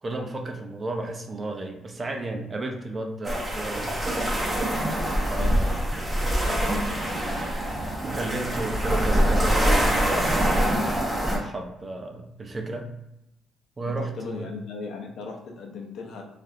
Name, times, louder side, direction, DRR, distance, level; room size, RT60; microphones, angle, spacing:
voice 1, 0.0-3.9 5.3-5.7 8.0-10.6 11.3-12.9 13.8-14.5, right 2 dB, 30° right, 2 dB, 0.5 m, -33 dB
sound 1, 3.2-11.4, equal, 15° right, 1.0 m, -24 dB
voice 2, 13.9-16.2, left 4 dB, 75° left, 1 dB, 0.6 m, -37 dB
3.0 x 2.5 x 2.7 m, 0.85 s
cardioid pair, 90°, 0 cm